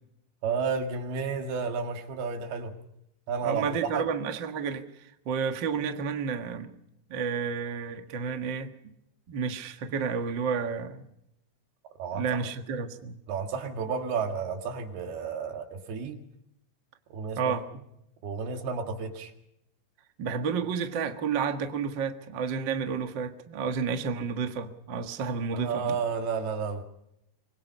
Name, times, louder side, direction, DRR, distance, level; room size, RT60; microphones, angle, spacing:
voice 1, 0.4-2.7 3.3-4.1 12.0-12.5 13.3-16.2 17.1-17.5 18.2-19.3 25.5-26.8, right 5 dB, 65° right, 3.9 m, -31 dB
voice 2, 3.4-4.8 5.2-6.7 7.1-8.7 9.3-11.1 12.1-13.2 17.4-17.7 20.2-26.0, right 6 dB, 80° right, 1.0 m, -31 dB
26.0 x 21.5 x 5.5 m
omnidirectional pair, 5.0 m